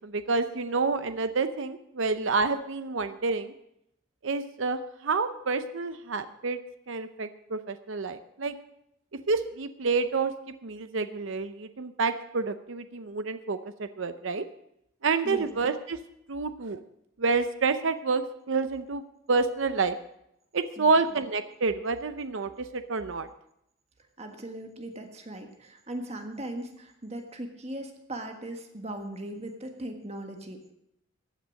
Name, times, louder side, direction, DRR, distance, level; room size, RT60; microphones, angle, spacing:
voice 1, 0.0-3.5 4.2-6.6 6.9-8.6 9.3-10.3 10.6-14.4 15.0-16.0 16.3-16.8 17.2-19.0 19.3-19.9 20.5-23.3, right 4 dB, 65° right, 10 dB, 0.7 m, -28 dB
voice 2, 20.8-21.1 24.2-30.7, right 1 dB, 30° right, 5 dB, 1.5 m, -39 dB
15.0 x 9.2 x 6.3 m, 0.79 s
head